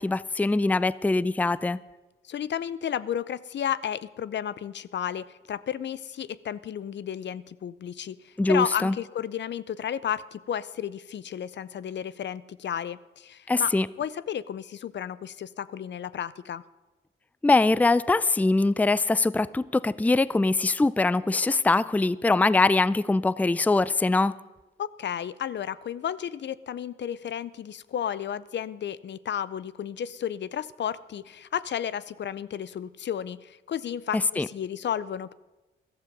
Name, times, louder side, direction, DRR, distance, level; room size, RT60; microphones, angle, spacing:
voice 1, 0.0-1.8 8.4-8.9 13.5-13.9 17.4-24.3 34.4-34.5, left 3 dB, 10° left, 19 dB, 0.4 m, -23 dB
voice 2, 2.2-16.6 24.8-35.3, left 9 dB, 60° left, 18 dB, 0.5 m, -33 dB
14.5 x 12.5 x 5.3 m, 1.1 s
supercardioid pair, 50°, 20 cm